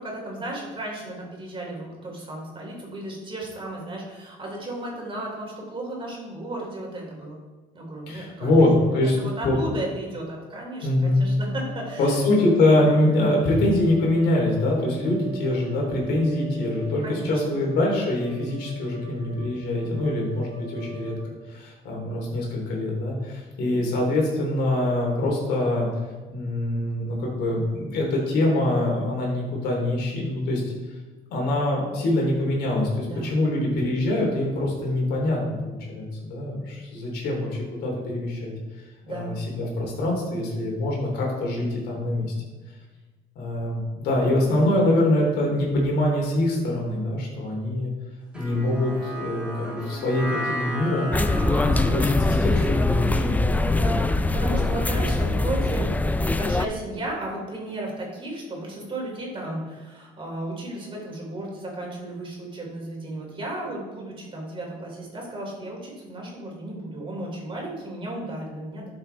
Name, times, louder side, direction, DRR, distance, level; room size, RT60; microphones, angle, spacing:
voice 1, 0.0-7.4 7.7-12.1 17.0-17.8 33.0-33.4 39.0-39.4 51.3-52.0 53.7-68.9, right 1 dB, 30° right, -1 dB, 3.1 m, -34 dB
voice 2, 8.1-9.2 9.4-9.6 10.8-11.4 12.0-21.1 21.5-25.9 26.3-30.6 31.3-38.5 39.1-42.3 43.3-47.9 48.3-51.1 51.5-53.9, left 1 dB, 75° left, -2 dB, 3.3 m, -24 dB
sound 1, 11.5-21.3, right 4 dB, 70° right, 1.8 m, -43 dB
sound 2, 48.3-54.7, right 1 dB, 5° right, 2.9 m, -35 dB
sound 3, 51.1-56.7, left 2 dB, 10° left, 0.4 m, -22 dB
12.0 x 6.7 x 3.4 m, 1.3 s
cardioid pair, 110°, 17 cm